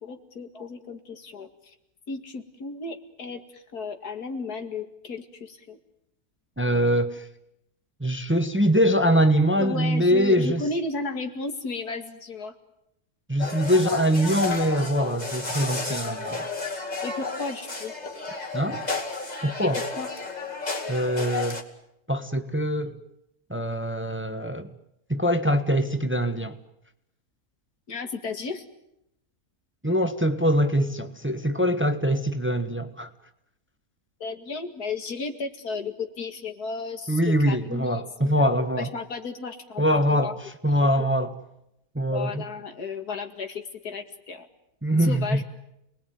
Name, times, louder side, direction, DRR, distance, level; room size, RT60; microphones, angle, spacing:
voice 1, 0.0-1.5 2.1-5.8 9.6-12.5 17.0-17.9 19.6-19.7 20.0-20.1 27.9-28.6 34.2-38.4 38.8-39.8 40.1-40.3 40.7-41.1 42.1-44.5 45.0-45.4, left 4 dB, 85° left, 2.7 m, -34 dB
voice 2, 6.6-7.3 8.0-10.7 13.3-16.5 18.5-18.8 19.4-19.8 20.9-21.6 22.1-23.0 23.5-24.7 25.1-26.6 29.8-33.1 37.1-38.9 39.8-41.4 41.9-42.4 44.8-45.4, equal, 10° right, 1.2 m, -23 dB
sound 1, 13.4-21.6, left 3 dB, 25° left, 2.6 m, -32 dB
29.5 x 20.5 x 9.4 m
omnidirectional pair, 1.6 m